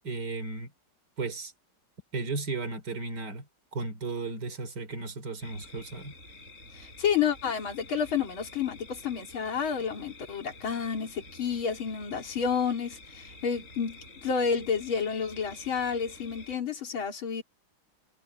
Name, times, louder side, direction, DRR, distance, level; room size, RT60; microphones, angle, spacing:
voice 1, 0.0-0.7 1.2-1.5 2.1-3.5 3.7-6.1, right 3 dB, 55° right, 4.0 m, -34 dB
sound 1, 5.4-16.6, left 2 dB, 35° right, 5.6 m, -49 dB
voice 2, 6.7-17.4, left 6 dB, 75° left, 3.5 m, -30 dB
omnidirectional pair, 2.2 m